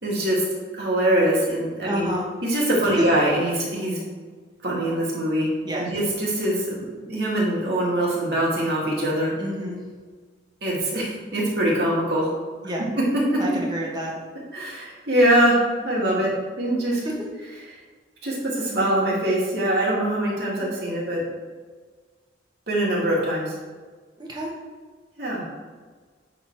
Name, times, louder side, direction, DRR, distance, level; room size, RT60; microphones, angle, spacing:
voice 1, 0.0-0.4 0.8-2.1 2.4-4.0 4.6-9.3 10.6-12.3 13.0-13.4 14.5-17.0 18.2-21.2 22.7-23.5 25.2-25.4, right 1 dB, 55° right, -4 dB, 2.4 m, -23 dB
voice 2, 1.8-2.2 5.6-5.9 9.4-9.8 12.6-12.9 13.4-14.1 16.9-17.1 20.5-20.7 24.2-24.5, equal, 20° right, -3 dB, 1.5 m, -30 dB
10.0 x 4.2 x 4.7 m, 1.4 s
head